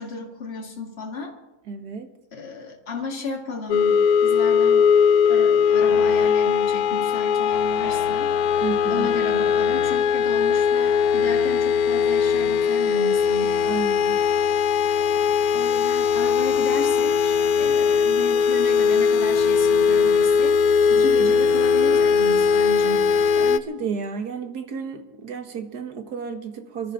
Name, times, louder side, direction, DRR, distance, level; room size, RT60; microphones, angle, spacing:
voice 1, 0.0-1.3 2.3-4.9 5.3-8.3 8.9-13.6 14.9-15.2 15.5-23.1, left 3 dB, 35° left, 0 dB, 2.3 m, -33 dB
voice 2, 1.7-2.1 8.6-9.1 13.7-14.2 21.0-21.3 23.4-26.9, right 5 dB, 65° right, 7 dB, 1.9 m, -32 dB
sound 1, 3.7-23.6, left 6 dB, 65° left, 1.1 m, -20 dB
25.0 x 13.0 x 3.8 m, 1.1 s
omnidirectional pair, 1.8 m